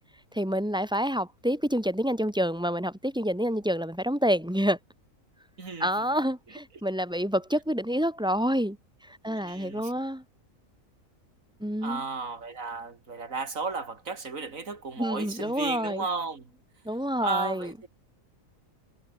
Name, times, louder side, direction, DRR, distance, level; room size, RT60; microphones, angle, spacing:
voice 1, 0.3-4.8 5.8-8.8 9.1-10.2 11.6-12.0 15.0-16.0 16.8-17.7, equal, 5° right, 1.4 m, -28 dB
voice 2, 5.6-5.9 6.5-6.6 9.3-9.9 11.8-16.6 17.2-17.9, right 4 dB, 75° right, 2.9 m, -34 dB
omnidirectional pair, 1.4 m